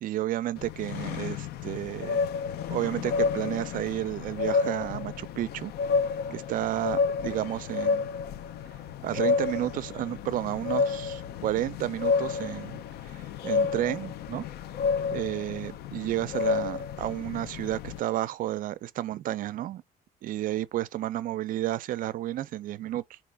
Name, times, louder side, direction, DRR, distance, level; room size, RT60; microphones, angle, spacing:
voice 1, 0.0-2.2 2.7-5.7 6.3-8.1 9.0-14.4 15.1-19.8 20.2-23.2, right 14 dB, 55° right, 0.4 m, -32 dB
sound 1, 0.6-18.0, left 5 dB, 70° left, 0.4 m, -30 dB
3.8 x 2.9 x 3.3 m
cardioid pair, 110°, 17 cm